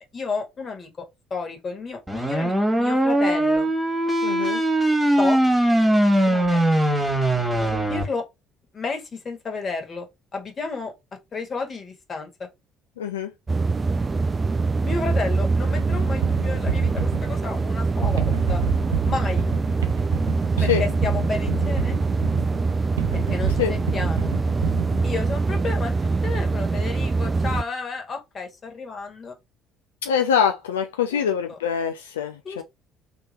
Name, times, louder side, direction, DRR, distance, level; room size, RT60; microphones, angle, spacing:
voice 1, 0.1-3.7 5.2-5.4 6.2-6.6 7.6-8.2 8.7-10.1 10.3-10.9 11.3-12.5 14.8-18.6 19.0-19.4 20.6-22.0 23.1-24.3 25.0-29.3 31.1-31.6 32.4-32.6, left 4 dB, 40° left, 1.7 m, -32 dB
sound 1, 2.1-8.0, right 1 dB, 10° right, 1.7 m, -20 dB
voice 2, 4.2-4.6 13.0-13.3 20.6-20.8 23.6-23.7 30.0-32.6, left 8 dB, 80° left, 0.4 m, -24 dB
sound 2, 13.5-27.6, right 3 dB, 25° right, 0.3 m, -24 dB
sound 3, 15.8-25.3, right 9 dB, 85° right, 0.5 m, -29 dB
3.4 x 3.0 x 4.4 m
hypercardioid pair, 55°, 0 cm